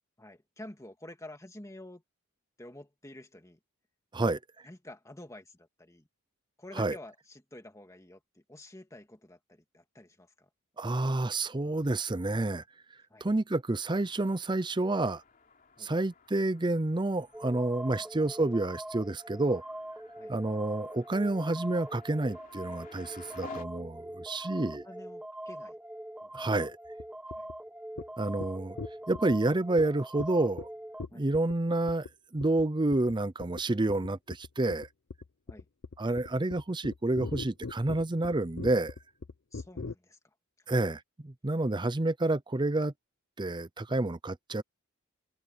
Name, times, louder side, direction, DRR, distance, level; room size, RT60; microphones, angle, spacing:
voice 1, 0.2-2.0 2.6-3.6 4.6-6.1 6.6-10.5 13.1-13.3 15.8-15.9 20.2-20.3 24.8-25.8 26.2-26.4 27.4-27.5 31.1-31.2 35.5-35.7 39.5-40.2 40.7-40.8, left 1 dB, 15° left, 2.2 m, -49 dB
voice 2, 10.8-12.6 13.2-15.2 15.8-19.6 20.3-24.9 26.3-26.8 28.2-28.8 29.1-30.7 31.1-32.1 32.3-34.9 36.0-38.9 40.7-42.9 43.4-44.6, right 2 dB, 20° right, 0.6 m, -29 dB
sound 1, 14.0-23.6, left 4 dB, 40° left, 3.3 m, -54 dB
sound 2, 17.3-31.1, right 1 dB, 5° right, 1.2 m, -43 dB
sound 3, 27.0-27.1 27.3-27.5 28.0-28.1 28.4-28.5 28.8-29.4 29.8-29.9 30.2-30.3 30.6-30.7 31.0-31.5 31.9-32.1 32.4-32.6 32.9-33.2 33.4-33.6 33.9-39.9, left 3 dB, 60° left, 0.7 m, -40 dB
head